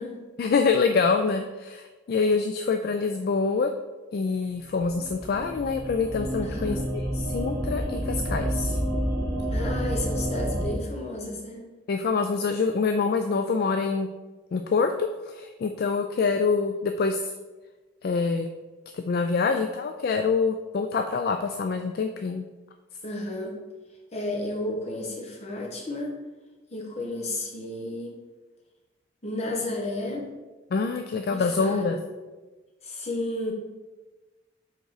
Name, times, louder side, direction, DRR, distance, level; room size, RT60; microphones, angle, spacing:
voice 1, 0.4-3.7 4.1-6.8 7.1-8.8 11.9-14.1 14.5-17.3 18.0-18.5 18.9-22.5 30.7-32.0, left 4 dB, 50° left, 6 dB, 0.3 m, -25 dB
sound 1, 4.8-10.7, equal, 55° right, 1.8 m, -29 dB
voice 2, 6.4-6.9 9.5-11.7 23.0-23.6 24.1-26.1 26.7-28.1 29.2-30.3 31.3-32.0 32.8-33.5, left 1 dB, 35° left, 0 dB, 1.0 m, -32 dB
5.2 x 3.7 x 4.8 m, 1.2 s
head